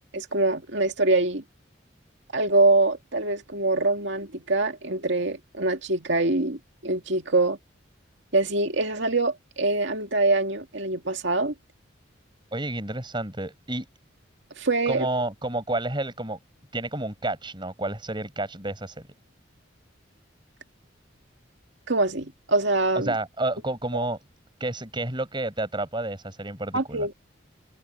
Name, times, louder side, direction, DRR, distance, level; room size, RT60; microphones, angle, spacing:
voice 1, 0.1-1.4 2.3-7.6 8.3-11.5 14.6-15.1 21.9-23.1 26.7-27.1, right 2 dB, 70° right, 2.3 m, -24 dB
voice 2, 12.5-13.9 14.9-16.4 16.7-19.1 23.0-24.2 24.6-27.1, right 2 dB, 25° right, 4.9 m, -30 dB
head